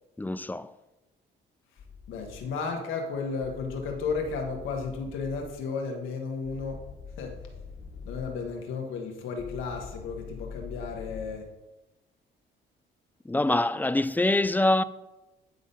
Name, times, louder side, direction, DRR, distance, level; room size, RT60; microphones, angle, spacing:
voice 1, 0.2-0.7 13.3-14.8, left 2 dB, 10° left, 0.3 m, -24 dB
sound 1, 1.8-2.5 3.4-5.5 6.4-8.5 9.4-11.3, left 5 dB, 55° left, 1.7 m, -44 dB
voice 2, 2.1-6.8 7.2-7.3 8.0-11.4, left 4 dB, 90° left, 1.5 m, -33 dB
9.6 x 4.1 x 5.4 m
cardioid pair, 90°, 20 cm